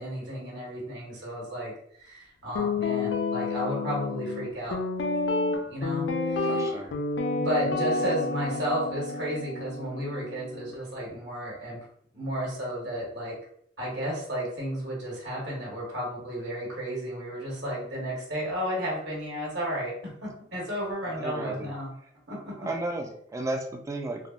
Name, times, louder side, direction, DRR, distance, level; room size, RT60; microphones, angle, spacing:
voice 1, 0.0-1.7 2.0-4.8 5.7-6.8 7.4-11.8 12.1-13.4 13.8-21.9 22.3-22.7, equal, 70° right, -4 dB, 1.2 m, -33 dB
Guitar, 2.5-10.7, left 3 dB, 75° left, 0.4 m, -30 dB
voice 2, 6.5-7.0 21.2-21.7 22.7-24.2, right 2 dB, 15° right, 4 dB, 0.3 m, -33 dB
3.3 x 2.1 x 2.4 m, 0.67 s
head